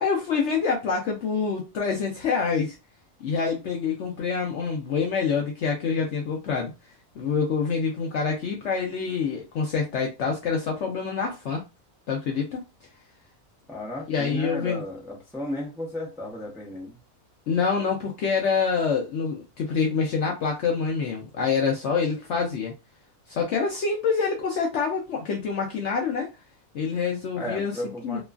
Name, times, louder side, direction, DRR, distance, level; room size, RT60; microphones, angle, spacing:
voice 1, 0.0-2.8 3.2-6.7 7.2-11.6 12.1-12.6 14.1-14.8 17.5-22.7 23.3-26.3 26.7-28.2, left 5 dB, 65° left, 0.7 m, -26 dB
voice 2, 13.7-17.0 27.4-28.2, left 1 dB, 5° right, 0.5 m, -34 dB
2.9 x 2.3 x 2.3 m
omnidirectional pair, 1.6 m